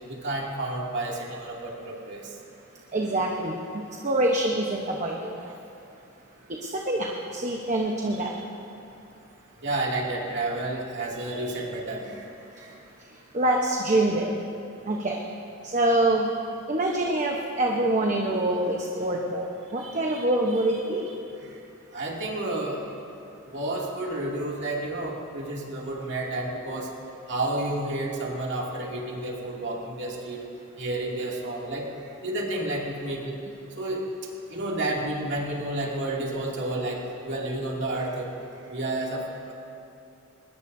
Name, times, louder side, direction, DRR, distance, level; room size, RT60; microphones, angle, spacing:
voice 1, 0.1-2.3 8.2-8.4 9.6-12.2 12.5-12.7 19.8-20.3 21.0-21.6 21.9-22.8 23.5-26.9 27.3-30.4 30.8-31.9 32.2-33.4 33.8-34.0 34.5-38.3 38.7-39.5, right 2 dB, 55° right, -3 dB, 2.6 m, -31 dB
voice 2, 2.9-5.4 6.5-8.3 12.6-12.7 13.1-14.4 14.8-15.2 15.6-16.3 16.7-21.1, right 1 dB, 35° right, 0 dB, 1.0 m, -25 dB
22.0 x 20.0 x 2.7 m, 2.7 s
head